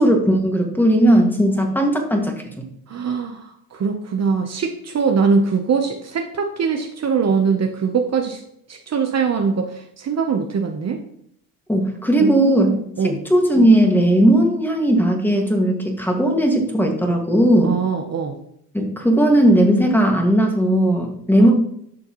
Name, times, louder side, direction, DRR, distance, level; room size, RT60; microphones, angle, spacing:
voice 1, 0.0-2.7 11.7-12.8 13.0-17.7 18.7-21.5, right 1 dB, 5° left, 2 dB, 1.9 m, -17 dB
voice 2, 2.9-8.4 8.7-11.0 12.2-13.2 17.6-18.4 21.4-21.5, right 5 dB, 40° right, 4 dB, 0.9 m, -22 dB
11.5 x 6.5 x 3.1 m, 0.71 s
cardioid pair, 100°, 38 cm